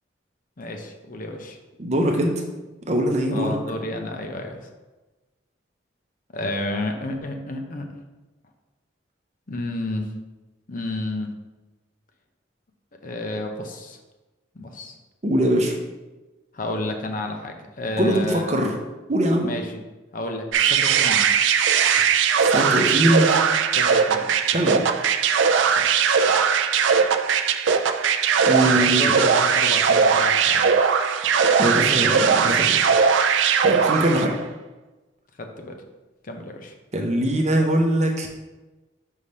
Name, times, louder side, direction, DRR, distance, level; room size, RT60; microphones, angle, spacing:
voice 1, 0.6-1.6 3.3-4.7 6.3-7.8 9.5-10.1 10.7-11.3 13.0-14.0 14.5-15.0 16.5-18.7 19.4-19.8 20.1-21.3 23.7-24.3 25.7-25.8 28.5-30.6 35.4-35.7 36.2-36.7, left 1 dB, 45° left, 4 dB, 0.7 m, -31 dB
voice 2, 1.8-2.3 2.9-3.6 15.2-15.7 18.0-18.7 19.1-19.5 22.4-23.3 24.5-24.8 28.5-29.2 31.6-32.8 33.6-34.3 36.9-38.3, right 1 dB, 35° right, 2 dB, 0.8 m, -21 dB
sound 1, 20.5-34.3, right 6 dB, 75° right, 0.4 m, -19 dB
5.6 x 3.3 x 5.4 m, 1.1 s
head